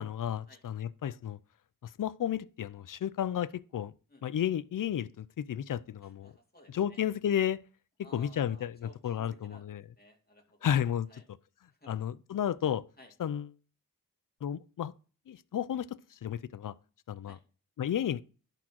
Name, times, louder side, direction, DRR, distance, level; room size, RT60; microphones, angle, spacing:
voice 1, 0.0-1.4 1.8-3.9 4.2-6.3 6.7-7.6 8.1-9.8 10.6-11.1 11.9-12.9 13.2-13.5 14.4-14.9 15.3-16.7 17.1-17.4 17.8-18.2, left 9 dB, 65° left, 0.6 m, -32 dB
voice 2, 6.0-7.0 8.0-10.7 11.1-11.2 11.7-12.1 13.0-13.1 17.2-17.4, left 1 dB, 25° left, 2.7 m, -58 dB
11.0 x 3.9 x 6.0 m
cardioid pair, 65°, 35 cm